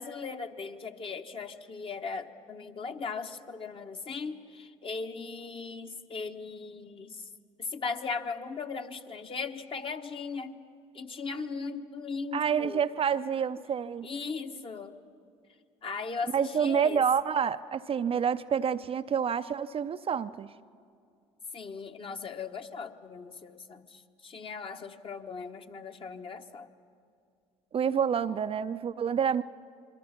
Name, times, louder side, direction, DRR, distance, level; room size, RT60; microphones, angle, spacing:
voice 1, 0.0-7.3 7.6-10.6 10.9-12.8 14.0-15.0 15.8-17.0 21.5-26.7, left 4 dB, 35° left, 6 dB, 1.4 m, -38 dB
voice 2, 12.3-14.1 16.3-20.5 27.7-29.4, right 7 dB, 35° right, 10 dB, 0.6 m, -28 dB
27.5 x 23.0 x 5.9 m, 2.3 s
hypercardioid pair, 60°, 16 cm